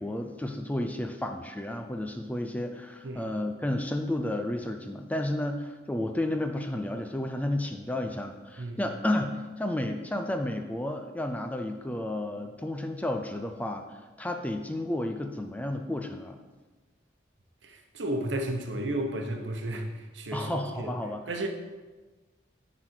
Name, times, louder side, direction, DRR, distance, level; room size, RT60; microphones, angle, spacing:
voice 1, 0.0-16.4 20.3-21.2, left 1 dB, 10° left, 5 dB, 0.4 m, -32 dB
voice 2, 3.0-3.4 8.6-8.8 17.6-21.0 21.3-21.5, right 1 dB, 75° right, 3 dB, 0.9 m, -33 dB
10.0 x 4.1 x 4.5 m, 1.2 s
head